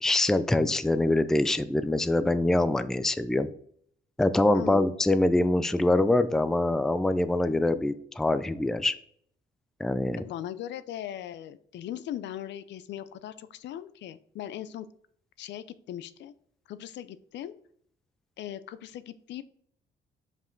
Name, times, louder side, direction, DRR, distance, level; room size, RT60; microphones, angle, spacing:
voice 1, 0.0-3.5 4.2-8.9 9.8-10.2, left 2 dB, ahead, 12 dB, 0.3 m, -24 dB
voice 2, 4.5-4.8 10.2-14.9 15.4-16.3 16.7-17.5 18.4-19.4, left 11 dB, 75° left, 14 dB, 0.5 m, -39 dB
5.3 x 5.1 x 3.8 m, 0.63 s
cardioid pair, 100°, 19 cm